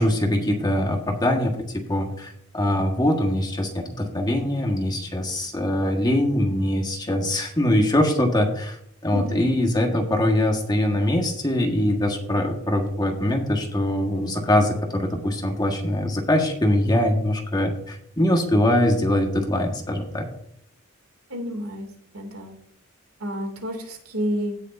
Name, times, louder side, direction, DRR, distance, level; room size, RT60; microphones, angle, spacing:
voice 1, 0.0-20.3, left 1 dB, 20° left, 2 dB, 1.5 m, -23 dB
voice 2, 9.1-9.4 21.3-21.9 22.1-22.5 23.2-24.6, equal, 70° right, 4 dB, 2.6 m, -30 dB
17.0 x 6.4 x 2.6 m, 0.69 s
head